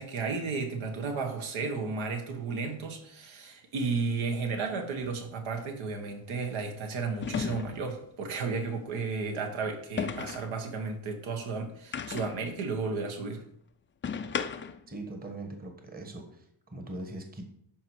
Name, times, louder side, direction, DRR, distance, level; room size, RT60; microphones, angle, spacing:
voice 1, 0.0-13.4, right 4 dB, 70° right, 4 dB, 1.8 m, -33 dB
sound 1, 5.0-5.2 7.2-8.0 10.0-10.6 11.9-12.5 14.0-14.9, left 6 dB, 25° left, 0.4 m, -34 dB
voice 2, 14.9-17.4, right 2 dB, 20° right, 4 dB, 1.3 m, -41 dB
12.0 x 5.1 x 4.8 m, 0.71 s
cardioid pair, 140°, 49 cm